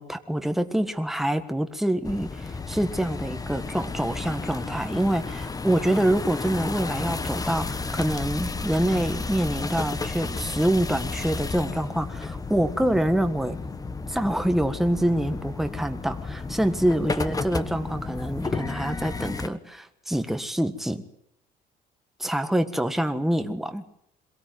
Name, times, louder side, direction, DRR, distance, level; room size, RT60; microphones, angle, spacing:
voice 1, 0.0-13.6 14.1-21.0 22.2-23.8, right 1 dB, ahead, 7 dB, 1.5 m, -26 dB
sound 1, 2.0-19.5, left 4 dB, 20° left, 1.3 m, -32 dB
22.5 x 17.0 x 9.3 m, 0.75 s
cardioid pair, 110°, 17 cm